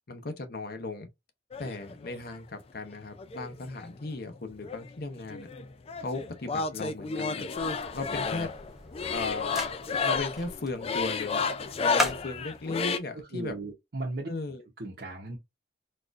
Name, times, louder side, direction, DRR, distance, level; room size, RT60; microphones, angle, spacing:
voice 1, 0.1-1.1 1.6-5.5 6.0-7.5 7.9-8.5 9.1-11.4 11.8-13.5 14.3-14.7, left 3 dB, 55° left, 0.7 m, -36 dB
sound 1, 1.5-2.4 3.2-4.4 4.6-13.0, left 5 dB, 30° left, 0.3 m, -32 dB
sound 2, 7.5-12.6, equal, ahead, 0.7 m, -38 dB
voice 2, 13.1-14.3 14.8-15.4, right 2 dB, 60° right, 0.9 m, -36 dB
4.1 x 2.5 x 2.4 m
head